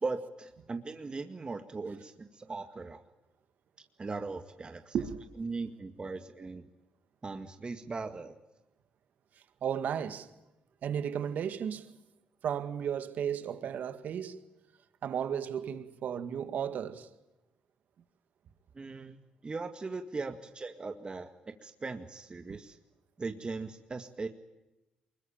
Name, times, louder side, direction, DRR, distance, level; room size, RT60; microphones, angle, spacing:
voice 1, 0.0-3.0 4.0-5.0 5.4-6.7 7.2-8.3 18.7-19.2 19.4-22.8 23.2-24.3, right 3 dB, 35° right, 2.0 m, -39 dB
voice 2, 9.6-10.3 10.8-12.0 12.4-14.5 15.0-17.1, right 8 dB, 70° right, 1.9 m, -34 dB
24.0 x 21.5 x 8.8 m
supercardioid pair, 70°, 3 cm